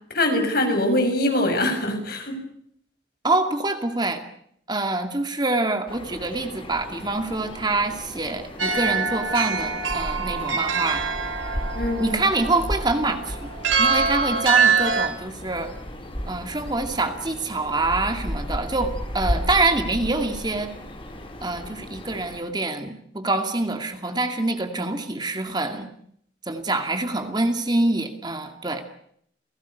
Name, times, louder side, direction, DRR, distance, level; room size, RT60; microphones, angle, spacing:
voice 1, 0.1-2.3 11.7-12.2, left 1 dB, 50° left, 5 dB, 6.9 m, -23 dB
voice 2, 3.2-4.2 4.7-11.0 12.0-13.5 13.8-15.7 16.3-20.7 21.4-25.9 26.5-28.8, right 2 dB, 20° right, 6 dB, 2.4 m, -25 dB
sound 1, 5.9-22.4, equal, 30° left, 4.7 m, -34 dB
sound 2, 8.6-15.1, right 5 dB, 85° right, 4.3 m, -24 dB
29.0 x 18.5 x 8.2 m, 0.69 s
head